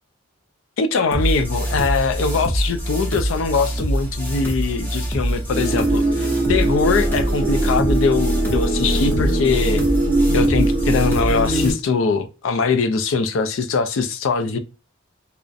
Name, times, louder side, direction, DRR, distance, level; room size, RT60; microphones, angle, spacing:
voice 1, 0.8-9.8 10.3-14.6, left 4 dB, 70° left, 0.4 m, -22 dB
sound 1, 1.1-11.7, equal, 10° left, 0.4 m, -24 dB
sound 2, 5.5-11.7, right 2 dB, 50° right, 0.7 m, -22 dB
2.4 x 2.0 x 2.5 m
head